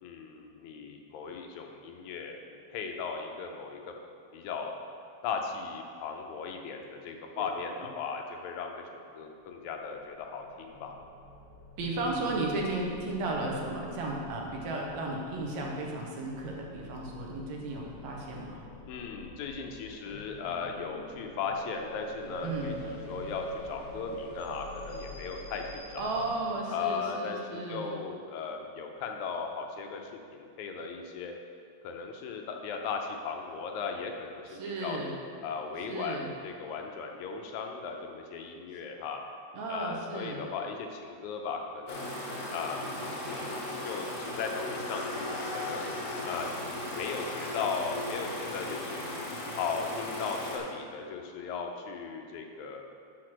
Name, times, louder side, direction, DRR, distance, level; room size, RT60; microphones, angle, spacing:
voice 1, 0.0-3.9 4.3-4.7 5.2-11.0 18.9-26.0 26.7-31.3 31.8-35.0 35.4-39.2 39.7-42.1 42.5-45.8 46.2-49.0 49.5-52.8, left 5 dB, 80° left, 3 dB, 2.1 m, -37 dB
sound 1, 9.8-26.5, equal, 60° left, 2.7 m, -45 dB
voice 2, 11.8-18.6 22.4-22.7 26.0-27.9 34.5-35.1 35.9-36.3 39.5-40.4, right 2 dB, 75° right, -1 dB, 2.2 m, -34 dB
sound 2, 41.9-50.6, left 1 dB, 45° left, 1.1 m, -37 dB
6.5 x 6.4 x 6.0 m, 2.4 s
omnidirectional pair, 3.4 m